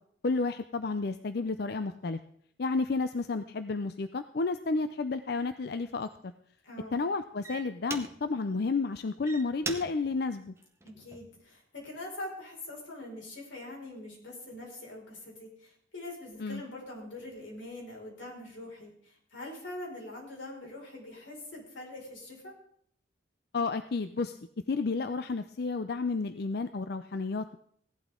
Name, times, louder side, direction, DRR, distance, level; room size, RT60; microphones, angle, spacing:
voice 1, 0.2-2.2 2.6-6.3 6.9-10.5 16.4-16.6 23.5-24.4 24.7-27.6, left 3 dB, 55° left, 11 dB, 0.5 m, -31 dB
sound 1, 5.2-5.4 6.0-6.3 7.0-7.1 7.4-8.5 9.0-11.4 12.0-12.3, right 4 dB, 15° right, 0.8 m, -42 dB
voice 2, 6.6-7.0 10.8-22.6, left 1 dB, 90° left, -2 dB, 5.3 m, -43 dB
16.5 x 11.5 x 3.7 m, 0.64 s
head